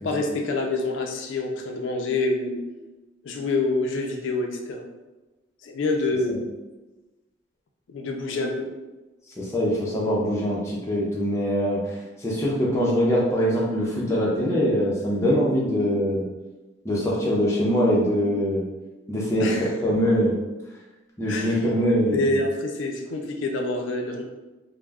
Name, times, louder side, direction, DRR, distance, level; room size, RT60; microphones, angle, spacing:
voice 1, 0.0-2.6 3.2-4.8 5.6-6.4 7.9-8.7 19.4-19.7 21.3-21.6 22.1-24.2, left 2 dB, 80° left, 2 dB, 0.4 m, -26 dB
voice 2, 9.4-16.3 16.8-18.7 19.1-20.3 21.2-22.3, equal, 15° left, -5 dB, 0.5 m, -23 dB
2.3 x 2.0 x 3.3 m, 1.1 s
head